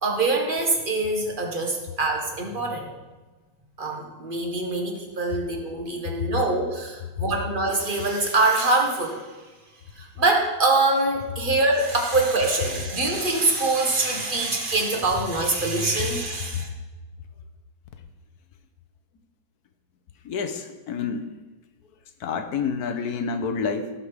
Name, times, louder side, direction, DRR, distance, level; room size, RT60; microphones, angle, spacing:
voice 1, 0.0-2.9 3.8-9.2 10.0-16.7, right 2 dB, 30° right, 1 dB, 1.6 m, -24 dB
voice 2, 20.2-21.3 22.2-23.9, left 5 dB, 60° left, 8 dB, 1.3 m, -28 dB
17.0 x 5.8 x 5.0 m, 1.3 s
omnidirectional pair, 2.0 m